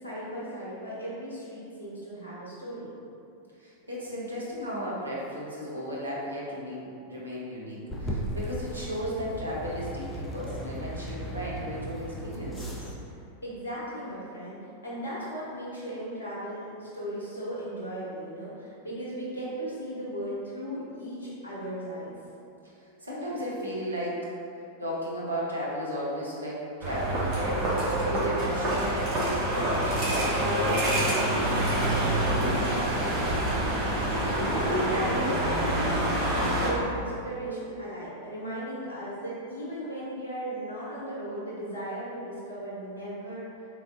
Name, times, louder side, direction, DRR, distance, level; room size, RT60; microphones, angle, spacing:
voice 1, 0.0-2.9 13.4-22.1 33.8-43.5, equal, 75° left, -8 dB, 0.8 m, -36 dB
voice 2, 3.6-12.8 22.8-24.3 24.8-31.2, equal, 80° right, -6 dB, 0.8 m, -35 dB
sound 1, 7.9-13.0, equal, 15° left, 0.5 m, -36 dB
sound 2, 26.8-36.7, right 1 dB, 40° right, 1.0 m, -26 dB
3.4 x 3.2 x 2.5 m, 2.6 s
figure-of-eight pair, 90°, 0 cm